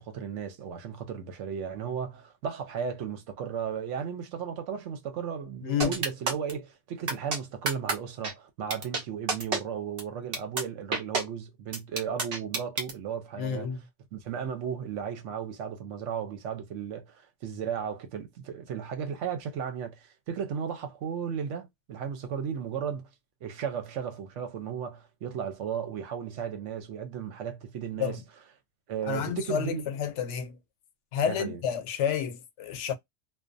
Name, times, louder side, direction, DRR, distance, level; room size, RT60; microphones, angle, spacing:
voice 1, 0.0-13.7 14.1-23.1 23.4-28.2 28.9-29.9 31.3-31.6, right 7 dB, 85° right, 1.0 m, -35 dB
voice 2, 5.6-6.0 13.4-13.8 28.0-28.2 29.0-30.6 31.1-32.9, left 8 dB, 80° left, 0.9 m, -30 dB
sound 1, 5.8-6.5 7.1-7.4 7.7-7.9 8.2-8.3 8.7-9.0 9.3-9.6 10.0-10.1 10.3-10.6 10.9-11.2 11.7-12.9, right 3 dB, 55° right, 1.0 m, -28 dB
2.5 x 2.2 x 2.5 m
omnidirectional pair, 1.2 m